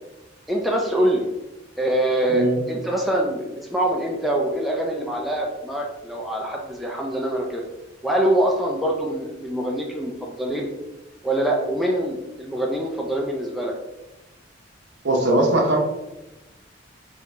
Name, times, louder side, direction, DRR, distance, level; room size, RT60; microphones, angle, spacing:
voice 1, 0.5-1.3 1.8-7.6 8.0-10.7 11.2-13.7, right 1 dB, ahead, -2 dB, 0.4 m, -24 dB
voice 2, 15.0-15.8, right 1 dB, 65° right, 1 dB, 0.7 m, -19 dB
4.1 x 2.9 x 2.6 m, 0.99 s
head